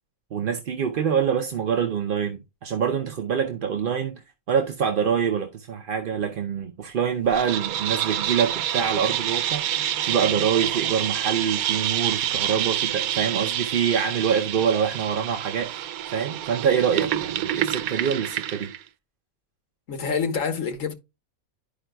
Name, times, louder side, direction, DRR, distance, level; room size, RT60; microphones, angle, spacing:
voice 1, 0.3-15.8 16.1-18.7, right 7 dB, 50° right, 0.7 m, -25 dB
sound 1, 7.3-18.8, right 11 dB, 90° right, 1.0 m, -27 dB
voice 2, 19.9-20.9, left 5 dB, 65° left, 1.6 m, -26 dB
11.5 x 5.0 x 2.2 m
omnidirectional pair, 1.5 m